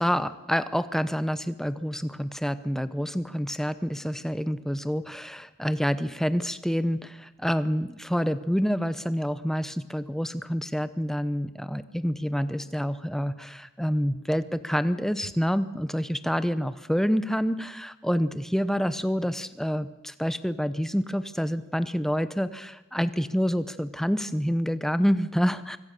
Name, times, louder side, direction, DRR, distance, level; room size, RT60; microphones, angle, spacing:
voice 1, 0.0-25.8, equal, ahead, 13 dB, 0.9 m, -27 dB
25.5 x 24.0 x 6.8 m, 0.99 s
head